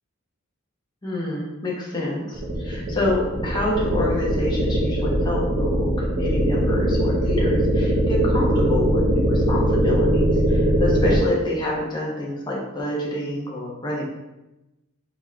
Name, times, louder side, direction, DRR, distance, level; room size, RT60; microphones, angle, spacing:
voice 1, 1.0-14.0, left 1 dB, 20° left, -4 dB, 1.0 m, -27 dB
sound 1, 2.3-11.2, right 1 dB, 45° right, 0.7 m, -21 dB
4.3 x 4.2 x 2.3 m, 1.0 s
head